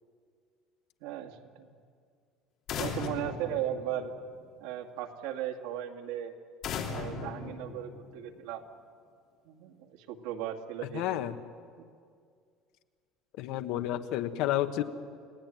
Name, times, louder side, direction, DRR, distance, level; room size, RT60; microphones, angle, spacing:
voice 1, 1.0-1.7 2.8-4.1 4.6-6.3 6.9-8.6 9.5-11.2, right 11 dB, 80° right, 3 dB, 2.4 m, -37 dB
sound 1, 2.7-4.5 6.6-8.4, left 5 dB, 40° left, 3.2 m, -38 dB
voice 2, 10.9-11.4 13.4-14.8, left 13 dB, 60° left, 9 dB, 1.3 m, -30 dB
29.5 x 18.0 x 9.3 m, 2.2 s
cardioid pair, 170°, 0 cm